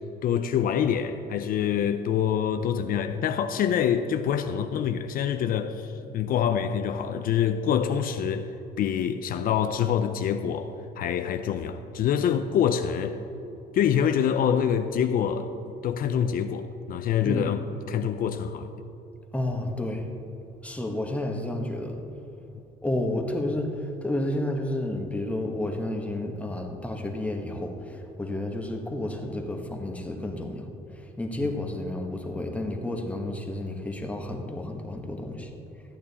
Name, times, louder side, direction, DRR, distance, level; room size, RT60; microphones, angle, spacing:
voice 1, 0.2-8.5 8.8-13.2 13.7-17.6 17.9-18.7 31.4-31.5, left 8 dB, 60° left, 0.5 m, -26 dB
voice 2, 19.3-20.1 20.6-22.0 22.8-35.5, left 1 dB, 10° left, 1.3 m, -31 dB
14.0 x 8.7 x 4.2 m
cardioid pair, 110°, 17 cm